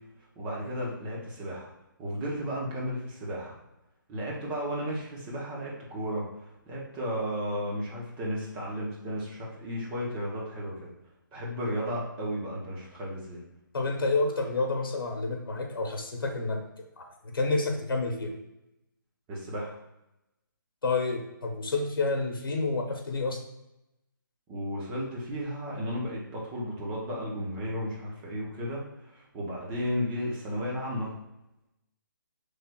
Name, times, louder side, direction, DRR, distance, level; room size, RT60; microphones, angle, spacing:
voice 1, 0.4-1.7 2.0-3.6 4.1-10.9 11.3-13.4 19.3-19.7 24.5-31.1, equal, 15° right, -4 dB, 0.7 m, -34 dB
voice 2, 13.7-16.6 17.0-18.3 20.8-23.4, left 3 dB, 80° left, 2 dB, 0.8 m, -29 dB
5.7 x 3.2 x 2.2 m, 0.90 s
hypercardioid pair, 165°, 11 cm